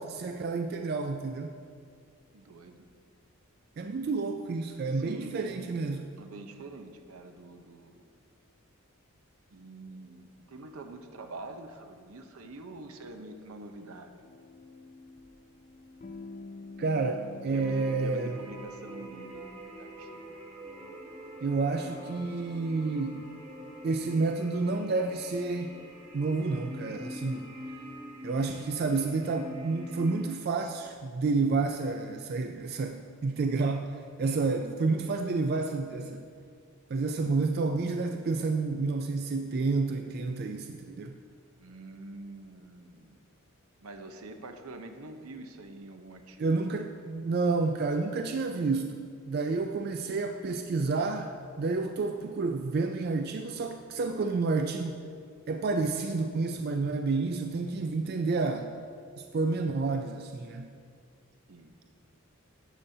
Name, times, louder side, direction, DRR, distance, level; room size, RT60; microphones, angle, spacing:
voice 1, 0.0-1.5 3.8-6.1 16.8-18.3 21.4-23.2 23.8-25.7 26.1-27.5 28.2-36.2 36.9-41.2 46.4-49.0 49.3-55.0 55.5-58.7 59.2-60.7, right 3 dB, 45° right, 5 dB, 0.3 m, -30 dB
voice 2, 2.3-2.9 4.9-5.7 6.2-8.1 9.5-14.2 17.5-20.3 41.6-43.2 43.8-46.9 61.5-61.8, right 2 dB, 80° right, 6 dB, 0.8 m, -46 dB
sound 1, 14.2-20.9, left 3 dB, 35° left, 0.4 m, -48 dB
sound 2, 17.5-30.3, equal, 25° right, 1.0 m, -44 dB
12.0 x 8.5 x 2.7 m, 2.2 s
head